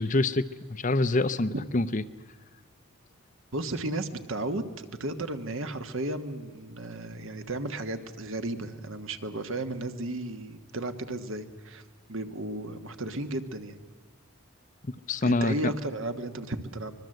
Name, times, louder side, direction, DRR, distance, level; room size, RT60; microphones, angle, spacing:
voice 1, 0.0-2.0 15.1-15.7, left 2 dB, 35° left, 13 dB, 0.7 m, -26 dB
voice 2, 3.5-11.8 12.1-13.8 15.2-16.9, right 2 dB, 60° right, 9 dB, 1.4 m, -34 dB
24.5 x 21.5 x 7.8 m, 1.4 s
head